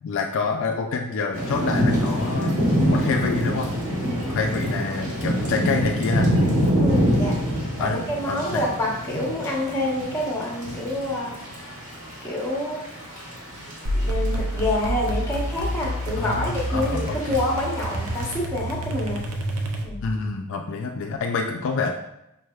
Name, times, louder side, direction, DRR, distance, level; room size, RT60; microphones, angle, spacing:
voice 1, 0.0-2.6 2.9-3.7 4.3-6.3 7.8-8.0 8.3-8.6 16.2-17.4 20.0-21.9, left 4 dB, 60° left, 2 dB, 0.3 m, -27 dB
Thunder / Rain, 1.3-18.4, equal, 40° right, 1.2 m, -26 dB
voice 2, 6.8-7.3 7.8-11.3 12.2-12.8 14.0-19.2 19.8-20.0, left 1 dB, 15° left, -3 dB, 0.9 m, -27 dB
sound 1, 13.8-20.2, right 1 dB, 80° right, 0.6 m, -28 dB
5.1 x 3.2 x 2.3 m, 0.87 s
head